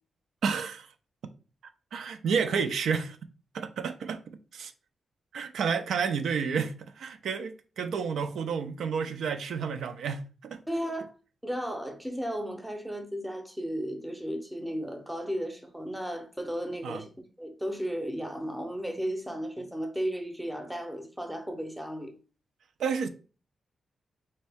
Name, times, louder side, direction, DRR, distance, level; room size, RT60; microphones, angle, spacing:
voice 1, 0.4-0.9 1.9-3.2 3.5-4.7 5.3-10.6 16.8-17.0 22.8-23.1, right 6 dB, 85° right, 0.4 m, -30 dB
voice 2, 10.7-11.1 11.4-17.1 17.4-22.1, equal, 5° right, 0.6 m, -34 dB
4.2 x 2.7 x 3.4 m
wide cardioid pair, 165°, 0 cm